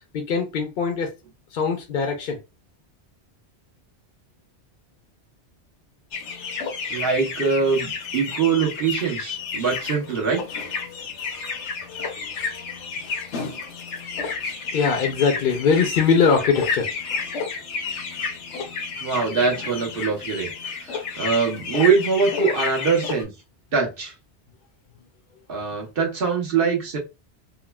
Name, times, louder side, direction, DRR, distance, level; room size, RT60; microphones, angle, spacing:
voice 1, 0.1-1.1 1.5-2.4 14.7-16.9, left 5 dB, 60° left, 0.7 m, -21 dB
sound 1, 6.1-23.2, left 5 dB, 85° left, 1.0 m, -31 dB
voice 2, 6.9-10.4 19.0-20.5 20.8-23.3 23.7-24.1 25.5-27.0, right 5 dB, 55° right, 1.1 m, -23 dB
3.6 x 2.0 x 2.3 m
omnidirectional pair, 1.2 m